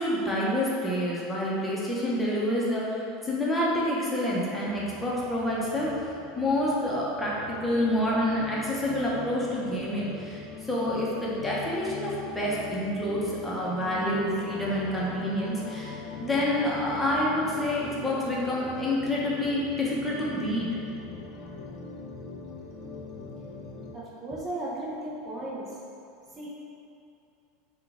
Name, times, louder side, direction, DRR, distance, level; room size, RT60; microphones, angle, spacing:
voice 1, 0.0-5.9 6.4-20.7, left 1 dB, 10° left, -6 dB, 0.8 m, -28 dB
sound 1, 4.6-23.9, left 4 dB, 45° left, 0.4 m, -41 dB
voice 2, 23.9-25.8 26.4-26.5, right 1 dB, 30° right, -5 dB, 0.6 m, -35 dB
3.8 x 2.3 x 3.5 m, 2.6 s
hypercardioid pair, 100°, 0 cm